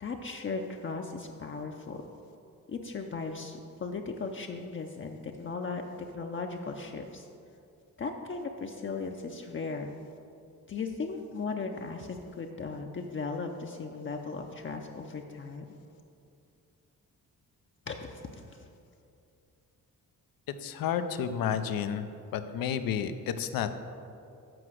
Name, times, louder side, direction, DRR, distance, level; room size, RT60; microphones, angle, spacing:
voice 1, 0.0-2.0 2.7-7.3 8.0-9.9 10.7-15.7 17.9-18.7, left 4 dB, 35° left, 3 dB, 0.6 m, -37 dB
voice 2, 20.6-22.1 22.3-23.7, left 8 dB, 80° left, 10 dB, 0.6 m, -31 dB
7.8 x 4.9 x 6.3 m, 2.6 s
cardioid pair, 70°, 34 cm